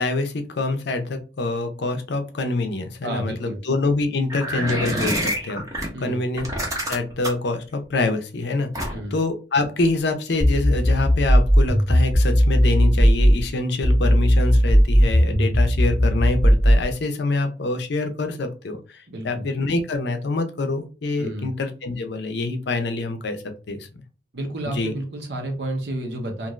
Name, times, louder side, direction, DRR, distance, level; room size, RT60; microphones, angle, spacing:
voice 1, 0.0-6.4 6.9-23.9 24.7-24.9, left 3 dB, 65° left, 6 dB, 0.5 m, -26 dB
voice 2, 3.0-3.6 5.9-6.2 8.9-9.1 19.1-19.4 21.2-21.5 24.3-26.5, right 1 dB, 70° right, 2 dB, 0.9 m, -30 dB
sound 1, 4.3-5.9 6.4-7.5 8.7-9.2, right 1 dB, 20° right, 0.8 m, -26 dB
sound 2, 10.4-13.4 13.8-16.8, equal, ahead, 1.1 m, -17 dB
2.5 x 2.5 x 3.1 m, 0.34 s
head